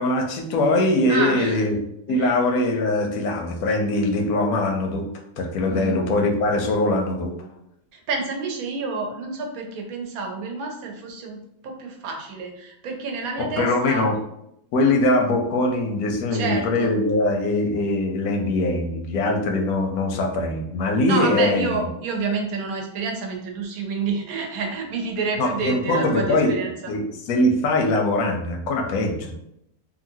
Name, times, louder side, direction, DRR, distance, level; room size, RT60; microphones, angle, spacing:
voice 1, 0.0-1.8 2.1-5.1 5.4-7.3 13.4-14.2 14.7-21.8 25.4-29.3, left 2 dB, 85° left, 3 dB, 1.1 m, -22 dB
voice 2, 1.1-1.7 2.1-2.3 5.7-6.0 7.9-14.1 16.3-16.9 21.1-26.7, right 4 dB, 80° right, 1 dB, 1.1 m, -29 dB
2.9 x 2.6 x 2.7 m, 0.79 s
omnidirectional pair, 1.5 m